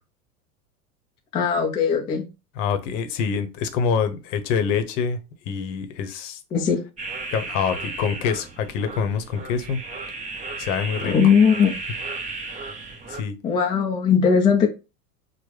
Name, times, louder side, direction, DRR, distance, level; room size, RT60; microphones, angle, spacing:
voice 1, 1.3-2.3 6.5-6.8 11.0-11.8 13.4-14.7, left 6 dB, 10° left, 0.3 m, -19 dB
voice 2, 2.6-5.2 5.5-6.4 7.3-9.8 10.6-11.1 13.1-13.3, left 6 dB, 55° left, 0.8 m, -25 dB
sound 1, 7.0-13.2, right 3 dB, 15° right, 0.8 m, -34 dB
4.5 x 2.1 x 3.1 m
hypercardioid pair, 95°, 45 cm